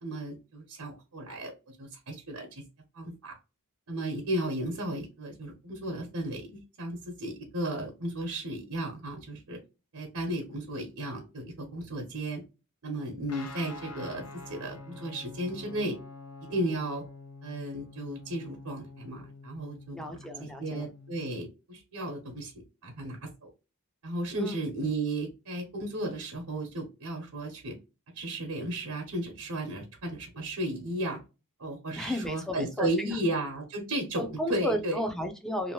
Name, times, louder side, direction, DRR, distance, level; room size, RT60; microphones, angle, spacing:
voice 1, 0.0-2.6 2.9-3.3 3.9-9.6 9.9-12.4 12.8-16.0 16.5-17.0 17.4-20.0 20.4-22.5 22.8-23.5 24.0-27.8 28.1-31.2 31.6-35.0, right 1 dB, 80° right, 0 dB, 0.9 m, -34 dB
Guitar, 13.3-21.3, left 3 dB, 85° left, 0.6 m, -47 dB
voice 2, 19.9-20.8 24.4-24.6 32.0-33.2 34.1-35.7, left 1 dB, ahead, 4 dB, 0.5 m, -33 dB
2.8 x 2.6 x 2.9 m, 0.29 s
head